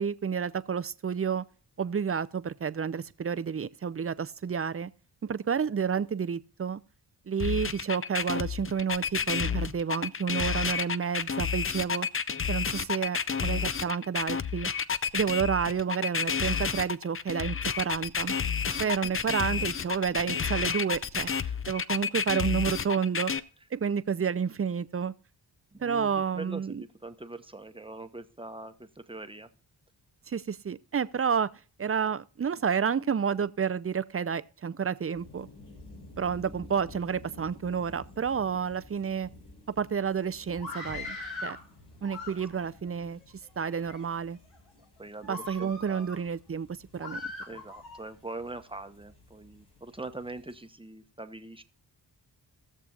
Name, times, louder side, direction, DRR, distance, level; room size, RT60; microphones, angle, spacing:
voice 1, 0.0-1.4 1.8-4.9 5.3-6.8 7.3-12.1 12.5-14.7 15.1-18.4 18.8-21.3 21.7-23.3 23.7-25.1 25.8-26.8 30.3-31.5 31.8-35.5 36.2-39.3 39.8-41.2 41.4-41.6 42.0-43.2 43.6-44.4 45.2-46.7 46.9-47.2, right 7 dB, 30° right, 0.6 m, -30 dB
sound 1, 7.4-23.4, left 6 dB, 30° left, 0.5 m, -30 dB
voice 2, 25.7-29.5 44.8-46.1 47.5-51.6, right 2 dB, 10° right, 1.0 m, -43 dB
sound 2, 35.1-50.7, left 2 dB, 55° left, 3.9 m, -53 dB
Screaming, 40.5-41.6 42.0-42.8 43.4-44.0 44.5-44.7 45.2-46.2 47.0-48.0, left 3 dB, 75° left, 3.8 m, -40 dB
19.0 x 6.8 x 2.4 m
cardioid pair, 55°, 45 cm